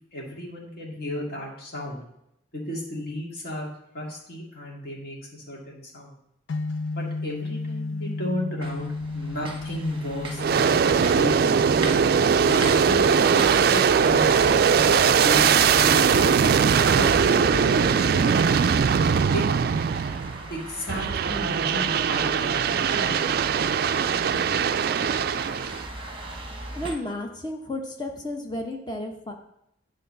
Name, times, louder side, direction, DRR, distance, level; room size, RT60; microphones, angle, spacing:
voice 1, 0.1-2.0 2.5-6.1 7.0-11.4 12.5-14.5 14.8-16.6 16.9-18.3 19.3-19.5 20.5-23.5 24.3-24.4, left 1 dB, 50° left, -3 dB, 2.4 m, -34 dB
sound 1, 6.5-18.6, left 3 dB, 90° left, 0.6 m, -36 dB
sound 2, 8.6-27.0, right 2 dB, 25° right, 1.1 m, -39 dB
Aircraft, 10.4-20.4 20.9-25.8, right 6 dB, 50° right, 0.3 m, -21 dB
voice 2, 26.8-29.3, left 1 dB, 20° left, 2 dB, 1.1 m, -32 dB
9.2 x 3.8 x 6.9 m, 0.80 s
head